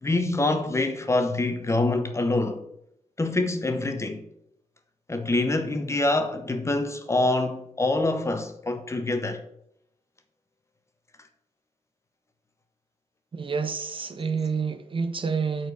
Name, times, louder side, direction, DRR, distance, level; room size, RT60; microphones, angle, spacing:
voice 1, 0.0-2.6 3.2-4.2 5.1-9.4, left 2 dB, 20° left, 0.9 m, -25 dB
voice 2, 13.3-15.7, right 5 dB, 40° right, 0.7 m, -28 dB
7.7 x 4.5 x 6.6 m
wide cardioid pair, 125°, 13 cm